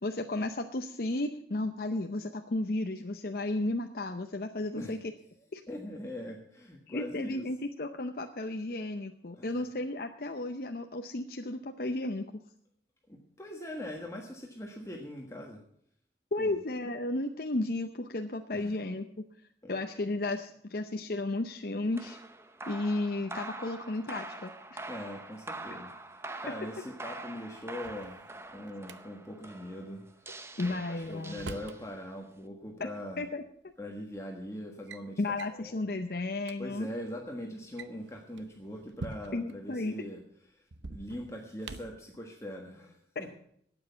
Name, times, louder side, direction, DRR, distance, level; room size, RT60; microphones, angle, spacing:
voice 1, 0.0-5.0 5.5-5.6 6.9-12.3 16.3-19.1 19.7-22.2 22.7-24.9 30.6-31.3 32.8-32.9 33.2-33.7 35.2-36.9 39.3-39.9 43.2-43.3, left 2 dB, 55° left, 5 dB, 0.7 m, -33 dB
voice 2, 5.7-7.5 9.3-9.7 13.1-15.6 16.4-16.6 18.5-18.8 19.6-19.7 24.9-30.0 30.6-33.2 33.8-35.8 36.6-40.2 40.5-43.3, equal, 15° left, 0 dB, 1.4 m, -42 dB
sound 1, 21.9-32.1, right 2 dB, 15° right, 0.8 m, -44 dB
Drawer open or close, 27.6-29.0 30.6-31.8 33.1-33.2 34.0-34.3 34.6-35.0 35.4-35.6 36.1-36.2 36.4-36.6 37.6-39.6 40.7-42.0, right 3 dB, 85° right, 0.8 m, -45 dB
12.5 x 9.0 x 6.9 m, 0.67 s
head